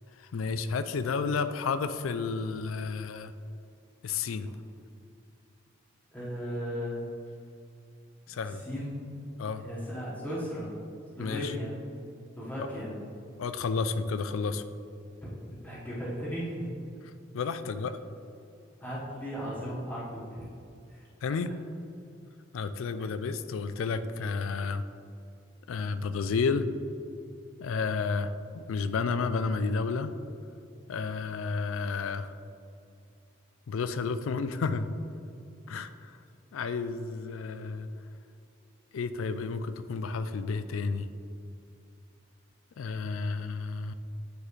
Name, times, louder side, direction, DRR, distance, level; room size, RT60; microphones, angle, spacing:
voice 1, 0.2-3.3 4.0-4.5 8.3-8.6 9.4-9.6 11.2-11.5 12.6-12.7 13.4-14.6 17.3-18.0 21.2-21.5 22.5-24.8 25.7-26.7 27.6-30.1 30.9-32.3 33.7-34.9 35.7-36.2 36.5-37.9 38.9-41.1 42.8-43.9, left 4 dB, 90° left, 11 dB, 0.4 m, -31 dB
voice 2, 6.1-7.1 8.4-8.9 9.6-10.7 11.1-11.7 12.4-12.9 15.5-16.7 18.8-20.5 20.9-21.0, equal, 10° left, -9 dB, 1.3 m, -36 dB
9.6 x 3.9 x 3.2 m, 2.5 s
head